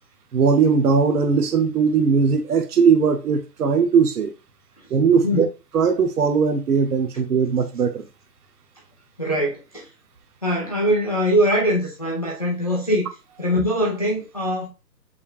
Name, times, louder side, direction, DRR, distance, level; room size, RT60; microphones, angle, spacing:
voice 1, 0.3-4.3 4.9-5.5 5.7-8.0, right 5 dB, 65° right, 1.0 m, -19 dB
voice 2, 9.2-9.9 10.4-13.1 13.4-14.7, equal, 25° left, 0.6 m, -22 dB
5.5 x 3.3 x 2.4 m
hypercardioid pair, 165°, 50 cm